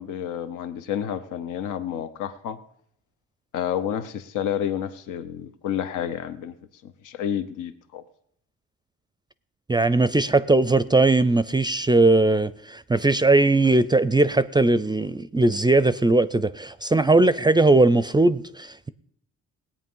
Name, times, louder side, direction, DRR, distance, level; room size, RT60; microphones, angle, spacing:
voice 1, 0.0-2.6 3.5-6.5 6.8-8.0, left 9 dB, 90° left, 0.8 m, -30 dB
voice 2, 9.7-18.9, right 2 dB, 15° right, 0.4 m, -19 dB
18.0 x 8.7 x 5.5 m
cardioid pair, 90°, 30 cm